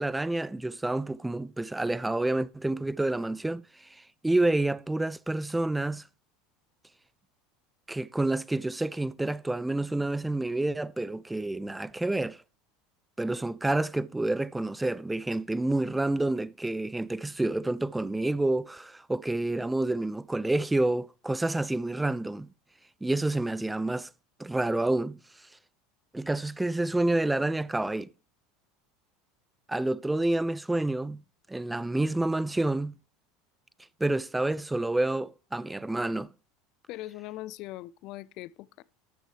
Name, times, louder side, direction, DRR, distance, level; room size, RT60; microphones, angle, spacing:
voice 1, 0.0-6.0 7.9-12.4 13.2-22.5 23.0-24.1 24.4-25.2 26.1-28.1 29.7-31.2 31.5-32.9 34.0-36.3, right 2 dB, 10° right, 0.4 m, -28 dB
voice 2, 36.9-38.8, left 16 dB, 60° left, 0.4 m, -41 dB
12.5 x 6.3 x 3.2 m
hypercardioid pair, 85°, 0 cm